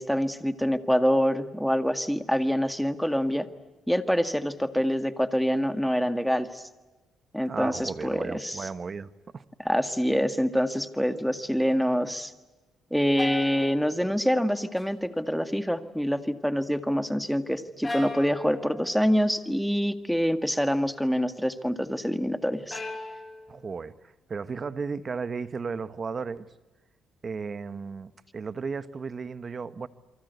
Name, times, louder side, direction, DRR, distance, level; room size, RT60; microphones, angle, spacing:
voice 1, 0.0-3.5 3.9-6.7 7.3-8.6 9.6-12.3 12.9-22.8, equal, ahead, 1.9 m, -26 dB
voice 2, 7.5-9.4 23.5-24.0 24.3-26.5 27.2-29.9, right 5 dB, 40° right, 1.4 m, -34 dB
sound 1, 13.2-14.8 15.2-15.7 17.8-19.1 22.7-23.8, left 2 dB, 20° left, 5.5 m, -38 dB
29.0 x 24.0 x 8.2 m
cardioid pair, 90°, 0 cm